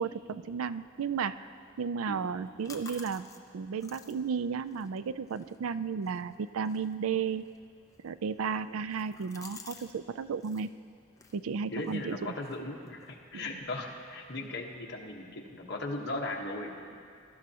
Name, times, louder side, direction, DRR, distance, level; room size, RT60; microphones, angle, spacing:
voice 1, 0.0-1.5 1.8-3.3 3.5-7.4 8.0-10.7 11.3-12.3 13.3-13.4, right 6 dB, 90° right, 13 dB, 0.4 m, -33 dB
sound 1, 2.2-10.0 10.2-10.7 11.1-13.5, left 4 dB, 15° left, 0.6 m, -54 dB
voice 2, 11.7-16.9, left 2 dB, 55° left, 0 dB, 1.3 m, -38 dB
21.5 x 12.0 x 2.9 m, 2.4 s
head